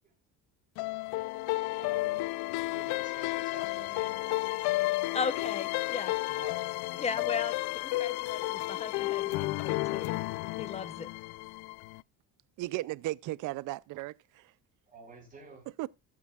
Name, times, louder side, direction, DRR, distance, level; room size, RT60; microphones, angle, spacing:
sound 1, 0.8-12.0, left 20 dB, 85° left, 0.5 m, -32 dB
voice 1, 1.8-2.2 2.7-4.9 6.3-7.0 14.9-15.7, right 3 dB, 20° right, 5.2 m, -51 dB
voice 2, 5.1-6.1 7.0-10.1 10.6-11.1, left 5 dB, 20° left, 0.6 m, -36 dB
voice 3, 12.6-14.5 15.8-15.9, right 17 dB, 55° right, 0.5 m, -36 dB
14.0 x 8.4 x 2.3 m
cardioid pair, 175°, 37 cm